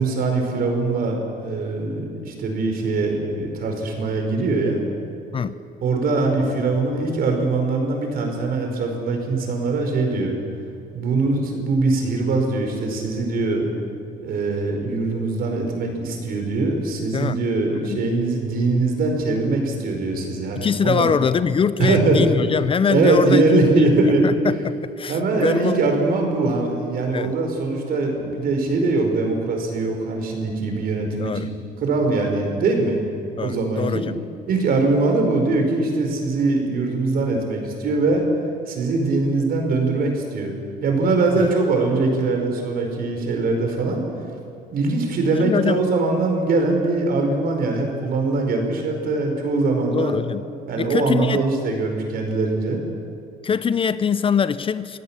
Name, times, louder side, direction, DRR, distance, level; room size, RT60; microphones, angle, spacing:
voice 1, 0.0-4.8 5.8-10.3 10.9-13.7 14.2-21.1 21.8-22.4 22.9-24.3 25.1-31.5 31.8-33.0 33.4-34.1 34.5-38.2 38.7-40.5 40.8-44.0 44.7-50.2 50.7-52.8, right 3 dB, 60° right, 4.7 m, -22 dB
voice 2, 20.5-23.4 24.2-25.8 27.1-27.3 31.2-31.5 33.4-34.1 41.4-41.5 45.4-45.8 49.9-50.4 50.8-51.4 53.4-55.0, left 6 dB, 30° left, 0.6 m, -23 dB
24.5 x 16.0 x 7.3 m
cardioid pair, 110°, 17 cm